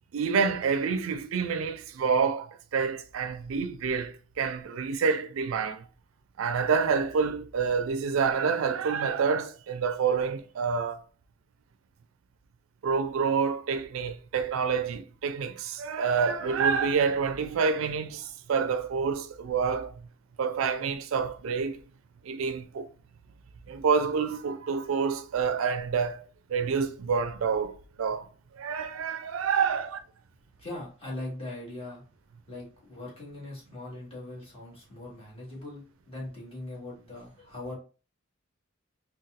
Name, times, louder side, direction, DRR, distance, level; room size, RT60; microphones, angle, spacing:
voice 1, 0.1-5.9 6.4-11.0 12.8-19.9 20.4-21.8 22.2-22.9 23.7-28.3 28.6-30.0, right 5 dB, 85° right, 0.4 m, -28 dB
voice 2, 30.6-32.0 32.5-37.7, left 2 dB, 30° left, 1.5 m, -40 dB
4.0 x 2.2 x 2.4 m
head